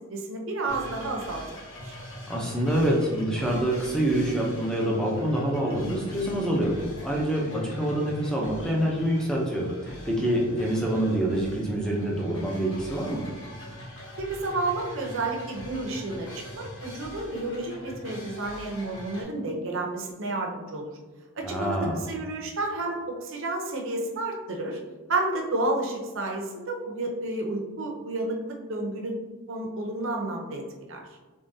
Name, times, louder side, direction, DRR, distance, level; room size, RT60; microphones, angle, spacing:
voice 1, 0.0-1.4 1.8-2.0 14.2-20.9 21.4-24.8 25.1-29.2 29.5-31.0, right 2 dB, 60° right, 1 dB, 0.7 m, -31 dB
sound 1, 0.7-19.2, left 1 dB, 60° left, 1.1 m, -42 dB
voice 2, 2.3-13.3 21.4-22.1, right 1 dB, 5° left, -2 dB, 0.6 m, -26 dB
3.6 x 3.4 x 2.7 m, 1.3 s
head